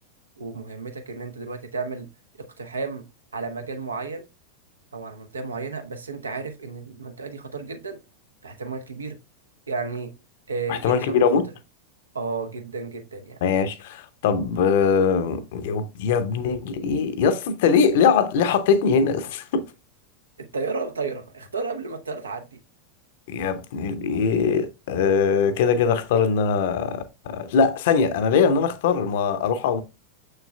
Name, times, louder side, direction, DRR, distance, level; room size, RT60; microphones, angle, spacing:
voice 1, 0.4-2.1 2.6-3.0 3.3-4.3 4.9-8.0 8.4-9.2 9.7-10.1 10.5-11.3 12.1-13.4 20.4-22.6, right 4 dB, 75° right, 0.8 m, -32 dB
voice 2, 10.7-11.5 13.4-19.7 23.3-29.8, left 6 dB, 50° left, 0.7 m, -21 dB
6.5 x 6.5 x 2.2 m
figure-of-eight pair, 90°, 0 cm